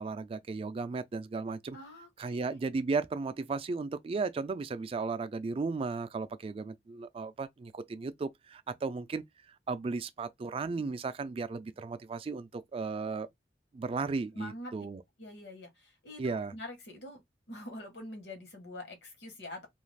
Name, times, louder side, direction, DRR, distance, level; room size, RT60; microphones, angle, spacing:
voice 1, 0.0-1.8 2.2-13.3 13.7-15.0 16.2-16.5, right 4 dB, 30° right, 0.3 m, -35 dB
voice 2, 1.7-2.6 14.3-14.7 15.2-16.2 16.5-17.2 17.5-19.7, left 1 dB, 70° left, 1.1 m, -45 dB
2.4 x 2.3 x 3.2 m
head